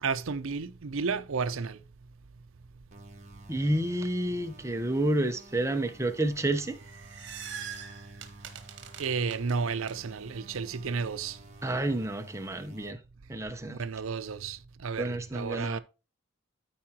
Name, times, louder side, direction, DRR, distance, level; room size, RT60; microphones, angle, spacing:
voice 1, 0.0-1.8 9.0-11.4 13.7-15.8, right 5 dB, 75° right, 0.6 m, -32 dB
sound 1, 2.9-12.9, right 2 dB, 35° right, 1.7 m, -52 dB
voice 2, 3.5-6.8 11.6-13.0 13.3-13.8 15.0-15.8, right 1 dB, 15° right, 0.7 m, -29 dB
sound 2, 6.6-9.9, right 8 dB, 55° right, 1.5 m, -43 dB
13.5 x 4.8 x 2.9 m
head